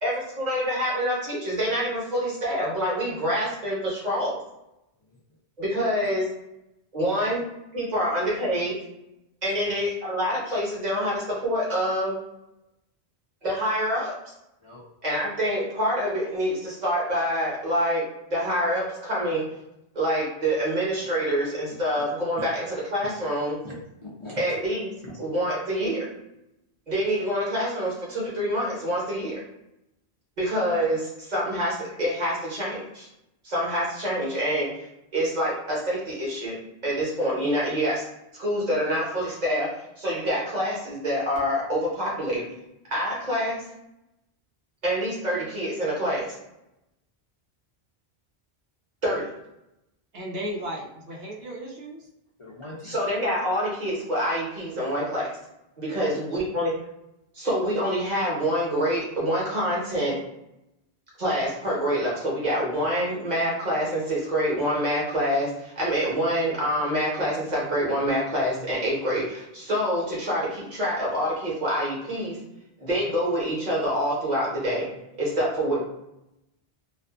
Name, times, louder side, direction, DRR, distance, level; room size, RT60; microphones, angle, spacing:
voice 1, 0.0-4.4 5.6-6.3 6.9-7.4 7.7-8.7 9.4-12.2 13.4-14.1 15.0-18.0 18.3-19.4 19.9-22.6 22.9-23.6 24.4-24.9 25.2-26.1 26.9-29.4 30.4-33.1 33.4-34.7 35.1-36.6 36.8-38.0 38.4-39.7 40.0-42.4 42.9-43.6 44.8-46.3 49.0-49.3 52.8-55.3 55.8-56.7 57.3-60.2 61.2-72.4 72.8-74.9 75.2-75.8, equal, 45° right, -5 dB, 1.1 m, -26 dB
voice 2, 23.6-24.4 25.0-25.2 52.4-52.9, left 1 dB, 45° left, -5 dB, 0.4 m, -42 dB
voice 3, 50.1-52.1 55.9-56.1, equal, 75° right, -3 dB, 0.9 m, -35 dB
2.5 x 2.3 x 2.4 m, 0.87 s
omnidirectional pair, 1.1 m